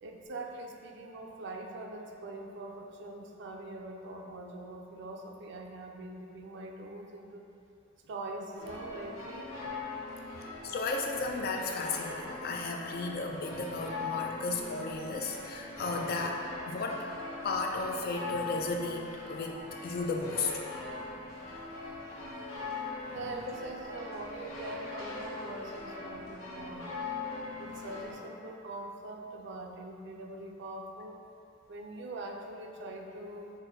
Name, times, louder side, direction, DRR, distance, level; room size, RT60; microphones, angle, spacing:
voice 1, 0.0-7.5 8.0-9.5 23.1-26.9 27.6-31.2 31.7-33.5, right 2 dB, 60° right, 2 dB, 0.4 m, -43 dB
sound 1, 8.5-28.1, left 3 dB, 85° left, 0.8 m, -41 dB
voice 2, 10.4-16.4 16.7-17.0 17.4-20.5, left 3 dB, 50° left, 2 dB, 0.4 m, -34 dB
4.1 x 2.1 x 3.8 m, 2.6 s
head